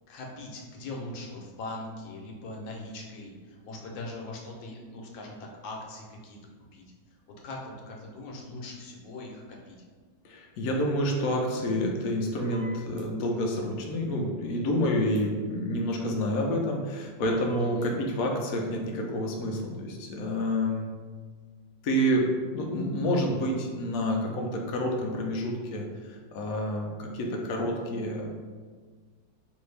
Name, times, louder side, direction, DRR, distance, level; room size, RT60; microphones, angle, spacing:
voice 1, 0.1-6.4 6.7-6.8 7.4-9.8 17.6-17.8, left 2 dB, 85° left, -1 dB, 1.4 m, -41 dB
voice 2, 10.2-20.8 21.8-28.3, equal, 65° left, 0 dB, 0.9 m, -28 dB
sound 1, 12.4-13.0 15.2-15.3 17.2-17.9, right 4 dB, 70° right, 0.6 m, -45 dB
3.8 x 2.6 x 3.2 m, 1.5 s
omnidirectional pair, 2.0 m